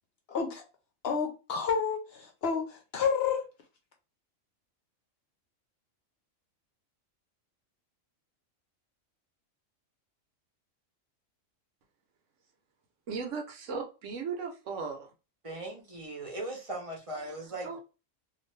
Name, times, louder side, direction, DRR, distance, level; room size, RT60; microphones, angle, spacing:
voice 1, 0.3-0.6 1.0-3.4, left 6 dB, 60° left, 0.7 m, -30 dB
voice 2, 13.1-15.1 17.6-17.8, right 5 dB, 70° right, 1.0 m, -36 dB
voice 3, 15.4-17.7, right 2 dB, 30° right, 0.7 m, -38 dB
2.5 x 2.4 x 3.1 m
omnidirectional pair, 1.4 m